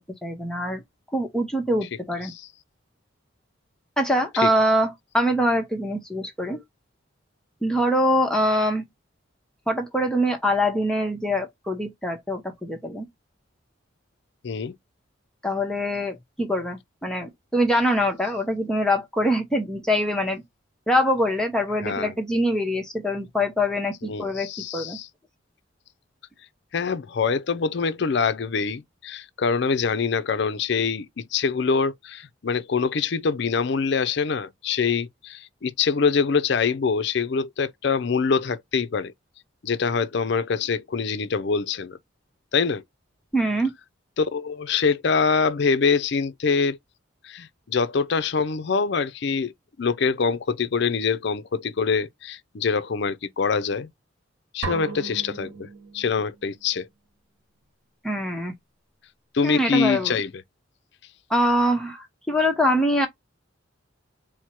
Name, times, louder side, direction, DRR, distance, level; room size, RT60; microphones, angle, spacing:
voice 1, 0.2-0.8 1.1-2.3 4.0-6.6 7.6-8.8 9.7-13.1 15.4-20.4 20.9-25.0 43.3-43.7 58.0-58.5 59.4-60.2 61.3-63.1, equal, 5° left, 0.8 m, -24 dB
voice 2, 14.4-14.7 21.8-22.1 24.0-25.1 26.7-39.1 39.6-42.0 42.5-42.8 44.2-46.8 47.2-49.5 49.8-53.9 54.5-55.7 55.9-56.9 59.3-60.3, left 5 dB, 55° left, 0.5 m, -24 dB
sound 1, 54.6-56.4, right 3 dB, 85° right, 1.0 m, -35 dB
4.4 x 2.1 x 4.4 m
head